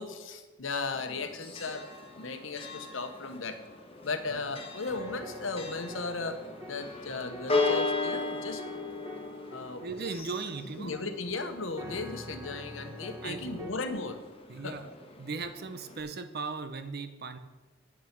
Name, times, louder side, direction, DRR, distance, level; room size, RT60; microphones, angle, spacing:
voice 1, 0.0-1.9 2.2-3.6 4.0-6.4 6.7-8.6 9.5-9.8 10.8-14.2 14.6-14.8, left 3 dB, 75° left, 8 dB, 1.1 m, -36 dB
Church bell, 0.9-16.0, left 3 dB, 30° left, 1.4 m, -37 dB
sound 1, 4.9-13.7, right 1 dB, 15° right, 1.1 m, -47 dB
voice 2, 9.8-11.0 13.2-13.7 14.5-14.8 15.2-17.4, right 4 dB, 55° right, 10 dB, 0.8 m, -38 dB
8.8 x 8.6 x 6.0 m, 1.2 s
head